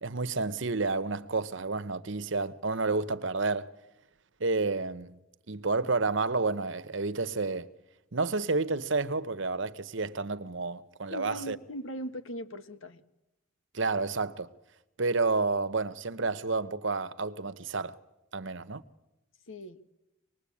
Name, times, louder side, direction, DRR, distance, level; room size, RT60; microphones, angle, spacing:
voice 1, 0.0-3.7 4.4-5.2 5.5-7.7 8.1-11.6 13.7-14.5 15.0-18.0 18.3-18.8, right 3 dB, 60° right, 0.9 m, -30 dB
voice 2, 11.1-13.0 19.5-19.8, equal, 70° left, 1.5 m, -39 dB
24.5 x 20.5 x 8.5 m
head